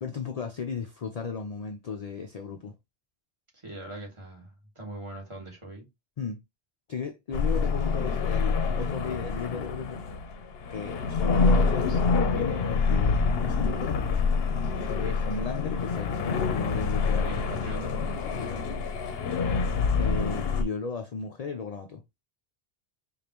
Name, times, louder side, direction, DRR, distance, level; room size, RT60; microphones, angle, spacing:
voice 1, 0.0-2.7 6.2-6.4 6.9-10.0 10.7-14.0 14.9-17.4 18.2-18.7 20.0-22.0, left 5 dB, 50° left, 0.5 m, -35 dB
voice 2, 3.6-5.9 11.9-12.0 17.2-17.9, right 1 dB, 30° right, 1.5 m, -41 dB
sound 1, 7.3-20.6, left 4 dB, 65° left, 0.9 m, -26 dB
5.0 x 2.5 x 2.9 m
omnidirectional pair, 1.1 m